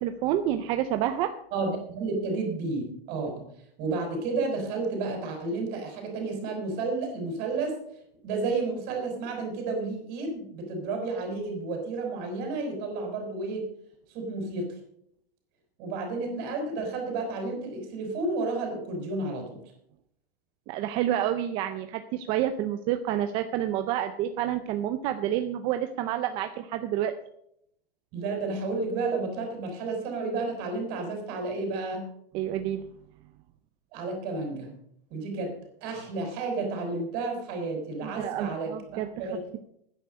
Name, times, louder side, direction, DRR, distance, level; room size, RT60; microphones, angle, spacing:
voice 1, 0.0-1.3 20.7-27.1 32.3-32.9 38.0-39.6, right 11 dB, 15° right, 8 dB, 0.4 m, -29 dB
voice 2, 1.5-3.5 3.8-7.8 8.2-13.7 14.1-14.7 15.8-19.6 28.1-32.1 33.9-34.7 35.1-35.5 35.8-38.7 39.1-39.5, right 3 dB, 30° right, 3 dB, 5.6 m, -31 dB
12.0 x 10.0 x 6.5 m, 0.72 s
hypercardioid pair, 155°, 30 cm